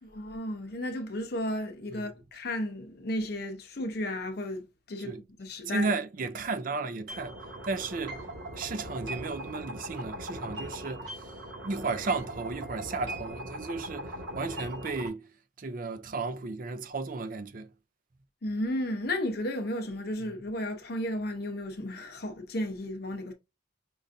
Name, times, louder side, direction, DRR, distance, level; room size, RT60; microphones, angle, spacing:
voice 1, 0.0-5.9 18.4-23.3, left 1 dB, 55° left, 0.7 m, -34 dB
voice 2, 5.7-7.4 7.6-8.2 8.6-11.3 11.6-15.3 15.6-17.7, right 3 dB, 45° right, 0.4 m, -34 dB
sound 1, 7.1-15.1, right 1 dB, 85° right, 1.8 m, -40 dB
5.2 x 2.5 x 2.6 m
head